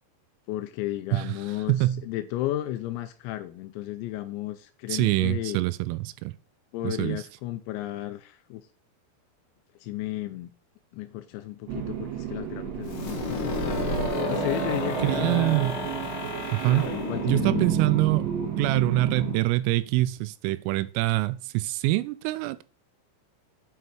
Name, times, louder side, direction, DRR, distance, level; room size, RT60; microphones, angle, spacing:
voice 1, 0.5-5.6 6.7-8.7 9.8-10.5 10.9-13.9 14.3-15.5 16.7-17.7, left 14 dB, 85° left, 2.6 m, -33 dB
voice 2, 1.7-2.0 4.9-6.3 6.8-7.2 15.0-15.8 16.5-16.9 17.2-18.3 18.6-22.6, right 17 dB, 90° right, 3.2 m, -25 dB
sound 1, 11.7-19.4, right 7 dB, 65° right, 3.3 m, -31 dB
sound 2, 12.9-18.6, left 4 dB, 55° left, 3.4 m, -33 dB
8.0 x 5.5 x 5.9 m
omnidirectional pair, 5.8 m